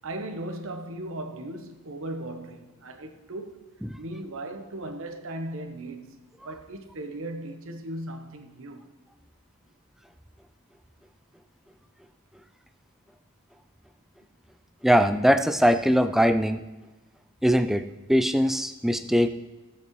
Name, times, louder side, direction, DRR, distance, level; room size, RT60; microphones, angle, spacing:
voice 1, 0.0-3.6 4.0-6.2 6.4-8.8, right 1 dB, 60° right, 1.0 m, -37 dB
voice 2, 14.8-16.6 17.4-19.3, equal, ahead, 0.3 m, -21 dB
16.0 x 8.0 x 3.1 m
head